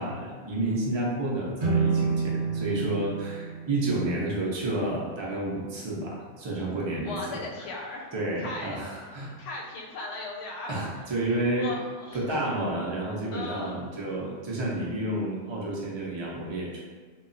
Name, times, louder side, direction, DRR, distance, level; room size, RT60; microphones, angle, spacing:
voice 1, 0.0-9.3 10.7-11.7 12.1-16.8, right 1 dB, 40° right, -4 dB, 0.4 m, -30 dB
sound 1, 1.6-4.8, right 5 dB, 60° right, 0.8 m, -29 dB
voice 2, 7.0-8.1 8.4-8.8 9.4-10.7 11.6-12.5 13.3-13.8, left 2 dB, 85° left, -2 dB, 0.9 m, -37 dB
2.9 x 2.3 x 2.5 m, 1.5 s
omnidirectional pair, 1.2 m